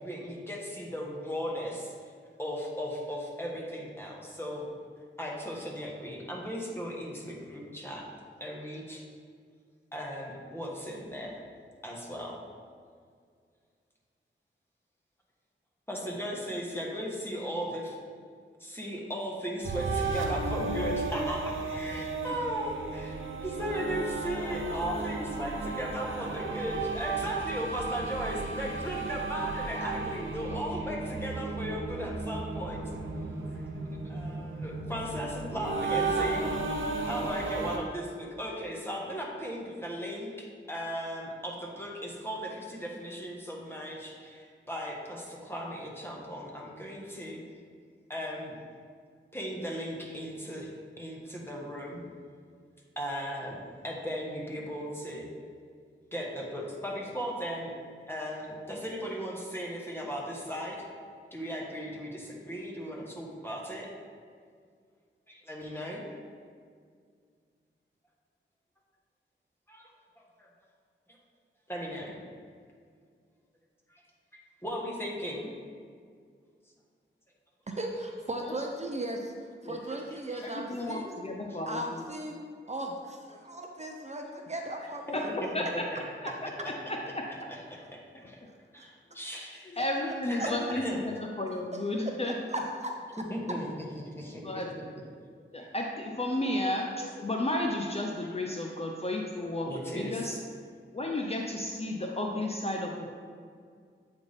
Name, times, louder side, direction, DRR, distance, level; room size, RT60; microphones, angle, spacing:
voice 1, 0.0-1.9 2.4-4.7 5.2-8.0 8.4-9.0 9.9-11.4 11.8-12.4 15.9-18.0 18.6-32.8 34.0-36.5 37.0-47.4 48.1-48.6 49.3-50.7 51.0-52.0 53.0-55.3 56.1-57.7 58.1-60.8 61.3-63.9 65.3-66.0 69.7-69.9 70.2-70.5 71.7-72.1 73.9-74.0 74.6-75.5 80.3-80.5 81.5-81.6 85.1-85.3 87.5-88.4 88.7-89.8 90.2-91.0 93.3-93.7 94.1-94.6 99.6-100.4, equal, 10° left, -2 dB, 1.3 m, -37 dB
sound 1, 19.6-37.8, right 3 dB, 75° right, 0.8 m, -34 dB
voice 2, 77.7-81.1 81.7-82.4 82.7-85.3 90.1-90.5 92.5-92.9, right 1 dB, 35° right, 2 dB, 0.6 m, -37 dB
voice 3, 80.4-82.0 85.1-85.9 86.2-87.5 88.4-88.5 88.8-88.9 89.3-92.3 94.4-94.7 95.5-100.4 100.9-103.1, left 1 dB, 30° left, 1 dB, 0.6 m, -33 dB
8.0 x 3.5 x 4.1 m, 2.1 s
cardioid pair, 60°, 20 cm